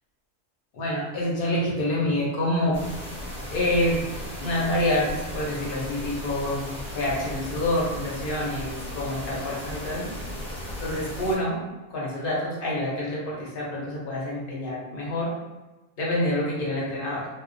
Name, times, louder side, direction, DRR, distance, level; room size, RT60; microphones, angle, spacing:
voice 1, 0.7-2.8 3.5-4.1 4.4-10.1 10.8-11.6 11.9-15.3 16.0-17.3, left 1 dB, 50° left, -5 dB, 0.7 m, -27 dB
sound 1, 2.7-11.4, left 1 dB, 5° left, 0.7 m, -36 dB
2.5 x 2.0 x 2.5 m, 1.1 s
omnidirectional pair, 1.6 m